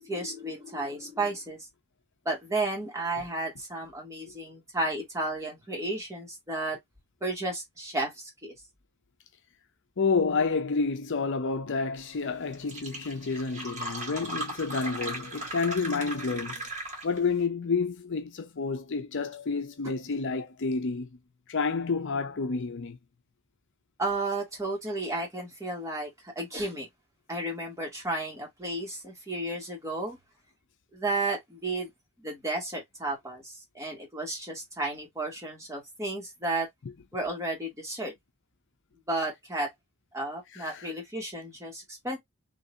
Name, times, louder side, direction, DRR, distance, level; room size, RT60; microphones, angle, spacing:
voice 1, 0.0-1.7 2.3-6.8 7.2-8.5 19.8-19.9 24.0-26.9 27.3-30.2 30.9-31.9 32.2-36.7 37.1-38.1 39.1-39.7 40.1-42.2, right 2 dB, 15° right, 2.2 m, -33 dB
voice 2, 10.0-16.6 17.0-21.1 21.5-23.0 40.5-40.9, left 4 dB, 55° left, 0.6 m, -29 dB
Fill (with liquid), 12.2-12.3 12.5-17.3, right 1 dB, 35° right, 2.0 m, -37 dB
3.9 x 3.2 x 2.7 m
head